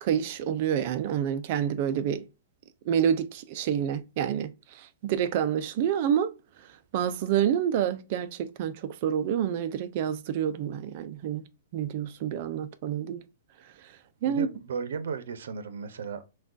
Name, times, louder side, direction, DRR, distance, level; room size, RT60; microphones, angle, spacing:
voice 1, 0.0-2.2 2.9-4.5 4.8-6.3 6.9-11.4 11.7-13.2 14.2-14.5, right 9 dB, 35° right, 0.4 m, -28 dB
voice 2, 14.2-16.2, right 5 dB, 75° right, 0.7 m, -35 dB
6.0 x 2.3 x 2.5 m
hypercardioid pair, 170°, 0 cm